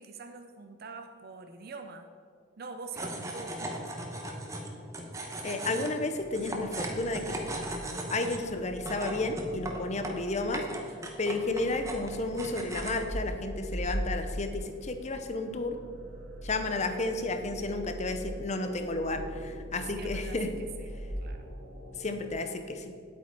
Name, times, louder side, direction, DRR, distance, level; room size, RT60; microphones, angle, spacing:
voice 1, 0.0-2.1 2.6-3.9 19.9-20.4 20.8-20.9 21.2-21.5, right 4 dB, 50° right, 6 dB, 0.5 m, -44 dB
sound 1, 2.9-13.0, right 1 dB, 15° right, 1.0 m, -38 dB
voice 2, 5.4-7.4 8.1-10.6 11.2-15.8 16.4-20.5 22.0-22.9, left 2 dB, 35° left, 7 dB, 0.7 m, -32 dB
sound 2, 6.2-22.3, equal, 75° right, 2.2 m, -41 dB
10.0 x 8.2 x 4.7 m, 2.2 s
head